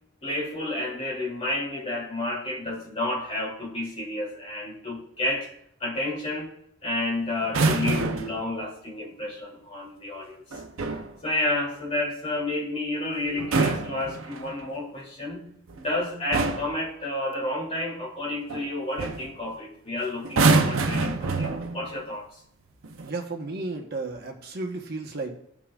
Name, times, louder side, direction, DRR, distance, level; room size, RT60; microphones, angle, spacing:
voice 1, 0.2-5.5 5.8-6.5 6.8-10.6 11.2-22.3, left 1 dB, 30° left, -3 dB, 2.7 m, -31 dB
sound 1, 7.4-8.4 10.5-11.1 13.3-14.7 15.7-15.9 16.3-16.8 18.5-18.7 19.0-19.3 20.2-21.9 22.8-23.1, right 3 dB, 80° right, 0.7 m, -25 dB
voice 2, 23.0-25.3, right 3 dB, 50° right, 2 dB, 1.1 m, -33 dB
16.5 x 5.7 x 2.4 m, 0.72 s
head